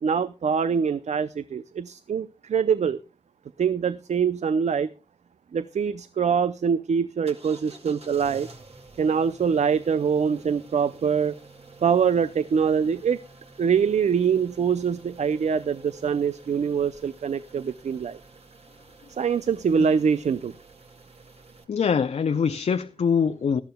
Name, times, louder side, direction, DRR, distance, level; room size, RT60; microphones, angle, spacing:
voice 1, 0.0-3.0 3.6-4.9 5.5-8.5 9.0-11.4 11.8-13.2 13.6-18.2 19.2-20.5, right 6 dB, 85° right, 0.5 m, -24 dB
sound 1, 7.3-21.6, right 3 dB, 65° right, 2.2 m, -49 dB
voice 2, 21.7-23.6, left 6 dB, 75° left, 0.5 m, -23 dB
18.0 x 13.0 x 2.2 m
wide cardioid pair, 80°, 11 cm